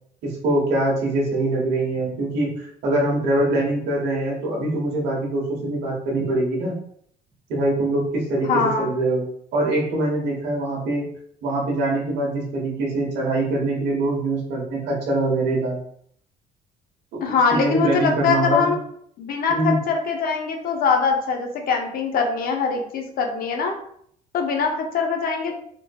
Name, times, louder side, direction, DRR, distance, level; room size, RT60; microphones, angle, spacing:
voice 1, 0.2-6.7 7.5-9.2 9.5-11.0 11.4-15.8 17.3-18.7 19.5-19.8, right 2 dB, 80° right, -2 dB, 1.2 m, -23 dB
voice 2, 8.5-8.9 17.2-18.8 19.2-23.7 24.3-25.6, left 5 dB, 60° left, 3 dB, 0.7 m, -22 dB
3.7 x 2.6 x 2.3 m, 0.66 s
cardioid pair, 110°, 17 cm